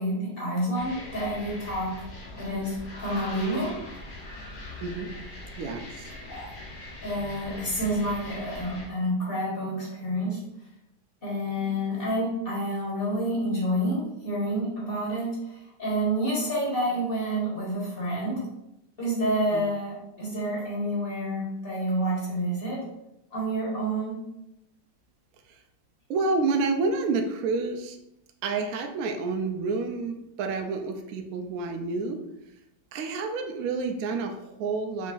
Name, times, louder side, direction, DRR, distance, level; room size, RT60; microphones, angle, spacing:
voice 1, 0.0-2.1 2.4-3.8 6.3-6.6 7.0-10.4 11.2-18.4 19.0-22.9 23.3-24.2, right 1 dB, 35° left, -5 dB, 1.4 m, -29 dB
sound 1, 0.7-8.9, left 2 dB, 75° left, 0.4 m, -41 dB
voice 2, 5.6-6.1 19.5-19.6 26.1-28.0 28.4-32.2 32.9-35.1, right 3 dB, 75° right, 4 dB, 0.8 m, -29 dB
5.0 x 3.7 x 2.4 m, 0.85 s
omnidirectional pair, 2.0 m